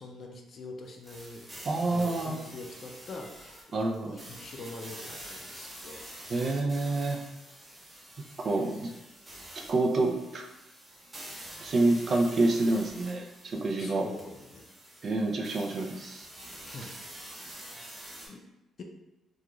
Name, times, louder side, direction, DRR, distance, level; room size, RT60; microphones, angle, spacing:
voice 1, 0.0-1.6 1.9-6.0 13.8-14.7 16.6-17.0 18.3-18.5 18.8-18.9, left 3 dB, 55° left, 3 dB, 0.4 m, -44 dB
sound 1, 1.0-18.3, right 1 dB, 25° right, 0.8 m, -47 dB
voice 2, 1.6-2.3 3.7-4.2 6.3-7.2 8.4-8.9 9.7-10.4 11.6-14.1 15.0-16.3 16.7-16.9, right 2 dB, 50° right, 2 dB, 0.4 m, -28 dB
2.3 x 2.3 x 2.9 m, 0.98 s
cardioid pair, 90°, 0 cm